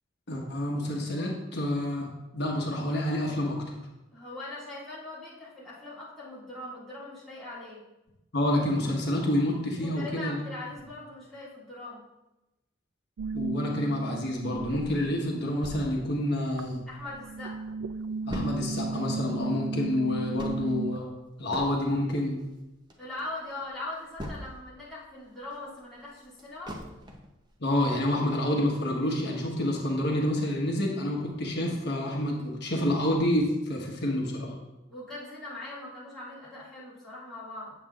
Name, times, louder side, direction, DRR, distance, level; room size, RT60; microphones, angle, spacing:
voice 1, 0.3-3.6 8.3-10.4 13.3-16.8 18.3-21.1 21.4-22.4 27.6-34.5, left 1 dB, 55° left, -1 dB, 1.2 m, -28 dB
voice 2, 4.1-7.8 9.8-12.0 16.9-17.6 23.0-26.8 34.9-37.7, left 2 dB, ahead, -10 dB, 2.1 m, -41 dB
sound 1, 13.2-15.5 15.8-21.0, right 3 dB, 85° right, 0.3 m, -35 dB
sound 2, 15.6-17.2 17.6-17.7 17.8-24.8 25.2-27.4 27.8-27.9 28.3-28.4, equal, 20° right, 0.7 m, -42 dB
7.9 x 7.2 x 2.4 m, 0.98 s
head